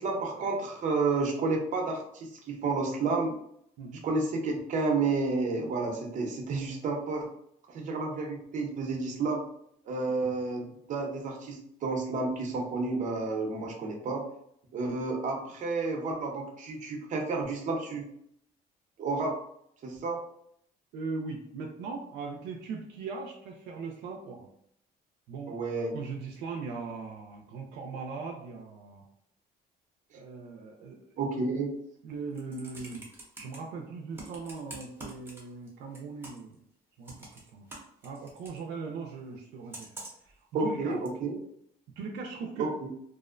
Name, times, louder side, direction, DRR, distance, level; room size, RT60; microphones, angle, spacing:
voice 1, 0.0-3.3 4.0-7.3 7.7-9.4 9.9-14.2 14.7-18.1 19.0-19.4 19.8-20.2 25.5-25.9 31.2-31.7 40.5-41.4 42.6-42.9, right 3 dB, 50° right, 1 dB, 0.7 m, -31 dB
voice 2, 20.9-24.5 25.3-25.6 25.9-29.0 30.1-31.0 32.0-33.0 33.4-36.6 37.0-37.1 37.5-37.7 38.0-39.9 40.6-41.0 42.0-42.7, right 4 dB, 85° right, 1 dB, 0.4 m, -39 dB
Computer keyboard, 32.1-33.6 34.1-35.7 35.9-36.5 37.0-38.6 39.7-40.3 41.0-41.1, right 2 dB, 15° right, 0.7 m, -45 dB
2.5 x 2.0 x 2.4 m, 0.70 s
cardioid pair, 110°, 17 cm